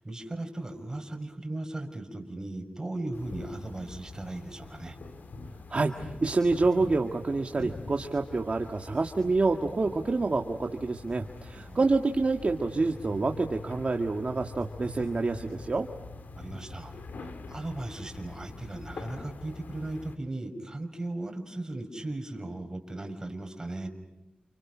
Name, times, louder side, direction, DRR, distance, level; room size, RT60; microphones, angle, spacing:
voice 1, 0.0-5.0 11.6-11.8 16.4-16.9 17.2-23.9, right 2 dB, 20° right, 4 dB, 5.6 m, -37 dB
sound 1, 3.1-20.2, left 3 dB, 80° left, 2.4 m, -44 dB
voice 2, 5.7-15.9, right 3 dB, 45° right, 3 dB, 1.9 m, -27 dB
29.5 x 29.5 x 6.3 m, 0.99 s
wide cardioid pair, 85°, 3 cm